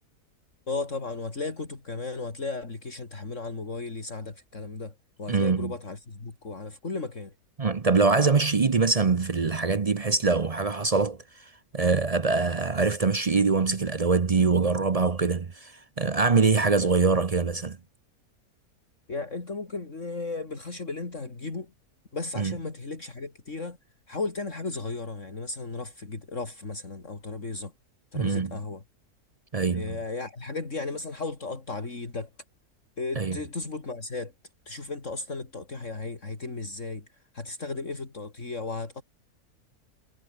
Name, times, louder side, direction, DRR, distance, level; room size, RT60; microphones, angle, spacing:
voice 1, 0.7-7.3 19.1-21.7 22.1-23.8 24.1-27.7 28.1-28.8 29.7-32.3 33.0-34.3 34.7-37.1 37.3-39.0, left 3 dB, 55° left, 3.6 m, -35 dB
voice 2, 5.3-5.7 7.6-11.2 11.7-15.7 16.0-17.8 22.4-22.6 28.1-28.6 29.5-30.0 33.2-33.4, right 4 dB, 35° right, 0.6 m, -23 dB
omnidirectional pair, 1.6 m